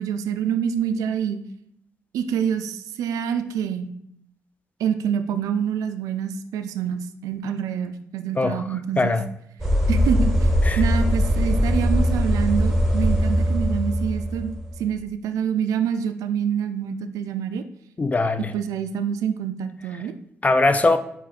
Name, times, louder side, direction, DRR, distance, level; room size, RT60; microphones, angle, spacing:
voice 1, 0.0-1.4 2.1-3.9 4.8-9.2 9.9-10.5 10.8-14.5 14.8-17.6 18.5-20.1, right 8 dB, 85° right, 0.3 m, -26 dB
voice 2, 8.4-8.7 9.0-9.3 10.6-10.8 18.0-18.5 20.4-21.0, left 3 dB, 25° left, 0.4 m, -21 dB
sound 1, 9.6-14.8, equal, 5° right, 1.1 m, -21 dB
5.3 x 2.4 x 4.1 m
supercardioid pair, 60°, 6 cm